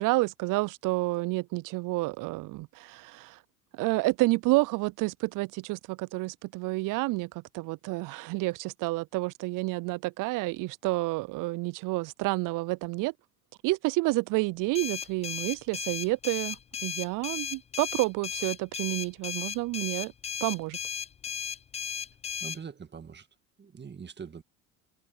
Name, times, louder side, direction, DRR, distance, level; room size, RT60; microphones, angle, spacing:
voice 1, 0.0-3.4 3.7-13.1 13.6-16.6 16.8-20.1 20.4-20.8, right 22 dB, 50° right, 0.6 m, -29 dB
sound 1, 14.7-22.6, left 8 dB, 15° left, 0.3 m, -35 dB
voice 2, 22.4-23.3 23.6-24.4, right 6 dB, 25° right, 2.0 m, -43 dB
hypercardioid pair, 75°, 42 cm